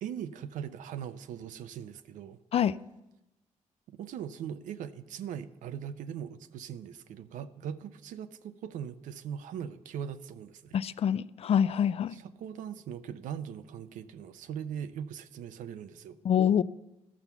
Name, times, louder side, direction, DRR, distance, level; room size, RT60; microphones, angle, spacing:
voice 1, 0.0-2.4 3.9-10.8 12.1-16.2, right 8 dB, 90° right, 0.6 m, -40 dB
voice 2, 10.7-12.2 16.2-16.6, left 9 dB, 50° left, 0.4 m, -25 dB
12.5 x 5.8 x 6.9 m
cardioid pair, 85°, 13 cm